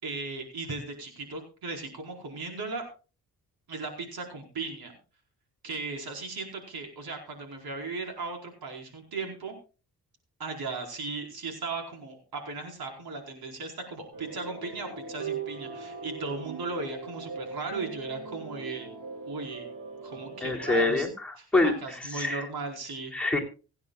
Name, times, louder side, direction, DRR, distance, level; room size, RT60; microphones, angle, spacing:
voice 1, 0.0-2.9 3.7-4.9 5.6-9.5 10.4-18.9 19.3-19.6 20.0-21.1 21.4-23.1, right 3 dB, 70° right, 2 dB, 4.8 m, -37 dB
sound 1, 14.1-21.0, right 5 dB, 55° right, 3.9 m, -40 dB
voice 2, 20.4-22.4 23.1-23.4, left 2 dB, 5° left, -1 dB, 3.4 m, -26 dB
25.5 x 9.7 x 2.4 m, 0.34 s
cardioid pair, 80°, 38 cm